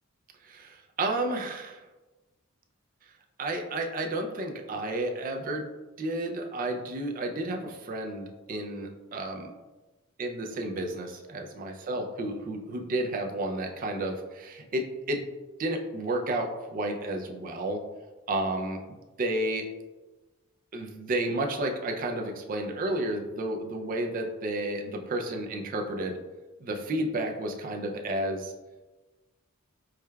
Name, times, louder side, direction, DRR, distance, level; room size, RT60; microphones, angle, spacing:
voice 1, 0.4-1.8 3.4-5.7 6.0-9.5 10.2-15.2 15.6-17.8 18.3-18.8 19.2-19.7 20.7-26.2 26.6-28.5, right 1 dB, 40° right, 2 dB, 0.4 m, -31 dB
4.7 x 2.2 x 2.2 m, 1.2 s
head